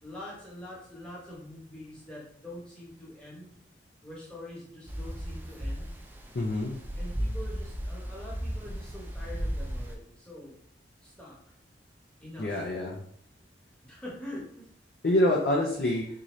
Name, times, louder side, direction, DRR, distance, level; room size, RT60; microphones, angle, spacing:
voice 1, 0.0-3.5 4.0-5.9 6.9-10.6 11.0-11.3 12.2-12.6 13.8-14.6, left 1 dB, 5° left, -6 dB, 1.1 m, -44 dB
sound 1, 4.9-10.0, equal, 10° right, 0.3 m, -35 dB
voice 2, 6.3-6.8 12.4-13.0 15.0-16.0, left 1 dB, 60° left, -2 dB, 0.5 m, -26 dB
3.7 x 2.8 x 3.1 m, 0.65 s
head